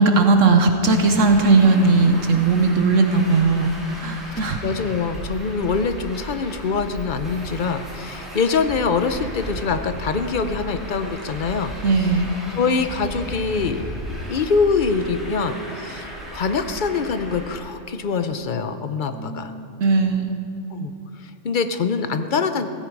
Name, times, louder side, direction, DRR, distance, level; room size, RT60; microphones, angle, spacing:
voice 1, 0.0-4.6 11.8-12.4 19.1-20.3, right 3 dB, 60° right, 5 dB, 1.2 m, -18 dB
Traffic noise roadway noise, 0.8-17.6, equal, ahead, 4.1 m, -35 dB
voice 2, 4.6-11.7 12.6-13.8 14.3-19.5 20.7-20.9 21.2-22.7, left 5 dB, 45° left, 9 dB, 0.7 m, -24 dB
16.5 x 15.0 x 4.7 m, 2.7 s
omnidirectional pair, 1.5 m